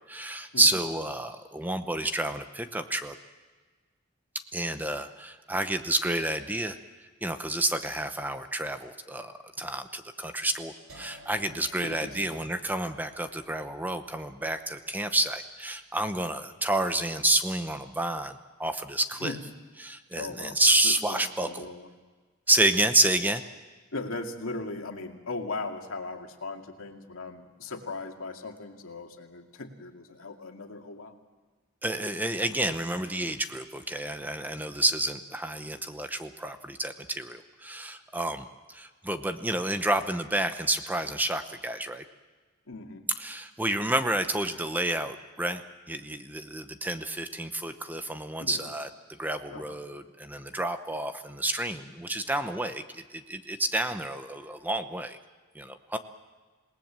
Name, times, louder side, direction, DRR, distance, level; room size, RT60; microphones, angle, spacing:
voice 1, 0.1-3.2 4.5-6.8 7.2-19.3 19.8-21.7 22.5-23.4 31.8-42.0 43.2-45.6 45.9-48.9 49.2-55.2 55.5-56.0, right 1 dB, 10° right, 9 dB, 0.8 m, -29 dB
sound 1, 10.9-16.8, equal, 80° right, 4.5 m, -56 dB
voice 2, 11.5-12.5 19.1-19.4 20.1-20.6 20.8-21.9 23.9-31.1 42.7-43.0 48.4-48.7 49.5-49.8, left 3 dB, 80° left, 3 dB, 2.3 m, -38 dB
27.0 x 18.5 x 7.5 m, 1.4 s
head